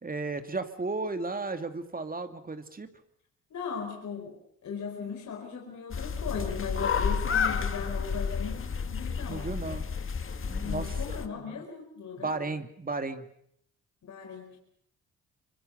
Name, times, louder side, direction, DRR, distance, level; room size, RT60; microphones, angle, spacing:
voice 1, 0.0-2.9 9.3-9.9 10.4-11.6 12.2-13.3, right 3 dB, 30° right, 8 dB, 2.5 m, -34 dB
voice 2, 3.5-9.5 10.6-12.4 14.0-14.6, left 6 dB, 65° left, 2 dB, 5.1 m, -38 dB
sound 1, 5.9-11.3, left 6 dB, 45° left, 1.9 m, -31 dB
25.5 x 24.0 x 6.8 m, 0.68 s
supercardioid pair, 65°, 30 cm